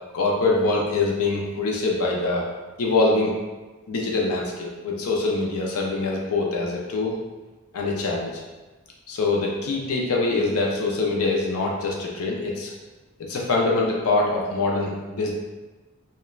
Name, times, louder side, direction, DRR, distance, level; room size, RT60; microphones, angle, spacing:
voice 1, 0.1-2.5 2.8-3.3 3.9-7.2 7.7-8.4 9.1-12.7 13.2-15.3, left 3 dB, 80° left, -1 dB, 0.4 m, -24 dB
3.0 x 2.1 x 2.3 m, 1.2 s
head